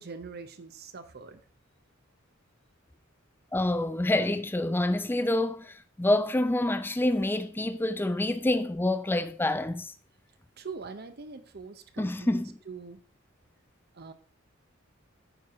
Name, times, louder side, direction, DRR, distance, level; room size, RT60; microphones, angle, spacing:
voice 1, 0.0-1.4 10.6-13.0 13.9-14.1, right 4 dB, 50° right, 0.8 m, -43 dB
voice 2, 3.5-9.9 12.0-12.5, left 1 dB, 10° left, 0.4 m, -27 dB
9.0 x 4.6 x 4.7 m
head